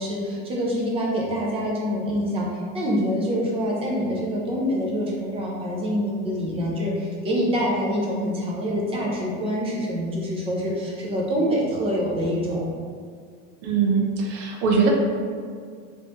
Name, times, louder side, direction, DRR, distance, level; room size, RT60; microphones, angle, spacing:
voice 1, 0.0-12.7, equal, 15° right, -4 dB, 0.4 m, -25 dB
voice 2, 13.6-14.9, right 5 dB, 70° right, 0 dB, 0.8 m, -21 dB
3.1 x 3.1 x 2.8 m, 2.1 s
supercardioid pair, 150°, 38 cm